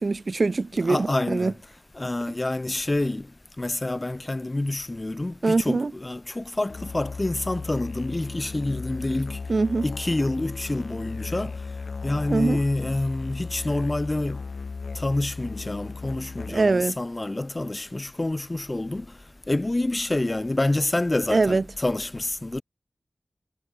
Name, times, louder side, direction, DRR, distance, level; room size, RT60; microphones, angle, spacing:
voice 1, 0.0-1.5 5.4-5.9 9.5-9.9 12.3-12.6 16.5-17.0 21.3-21.6, right 3 dB, 50° right, 0.6 m, -23 dB
voice 2, 0.8-1.5 1.9-3.3 3.6-9.4 9.8-11.6 12.0-14.4 14.9-19.1 19.5-22.6, left 2 dB, 25° left, 1.0 m, -27 dB
Musical instrument, 6.7-16.8, left 4 dB, 70° left, 1.8 m, -36 dB
wide cardioid pair, 80°, 0 cm